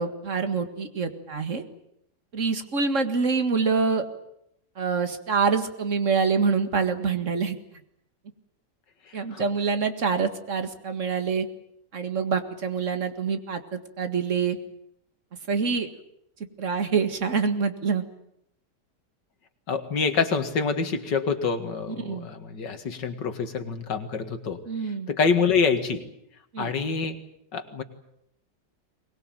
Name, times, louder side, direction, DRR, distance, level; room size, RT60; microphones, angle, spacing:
voice 1, 0.0-1.6 2.3-4.0 4.8-7.6 9.1-11.5 11.9-14.6 15.5-15.9 16.6-18.0 21.9-22.3 24.7-25.1 26.5-26.7, right 5 dB, 45° right, 9 dB, 2.2 m, -26 dB
voice 2, 9.1-9.4 19.7-24.6 25.1-26.0 26.6-27.2 27.5-27.8, left 5 dB, 90° left, 9 dB, 2.6 m, -26 dB
23.5 x 20.5 x 9.1 m, 0.74 s
omnidirectional pair, 1.8 m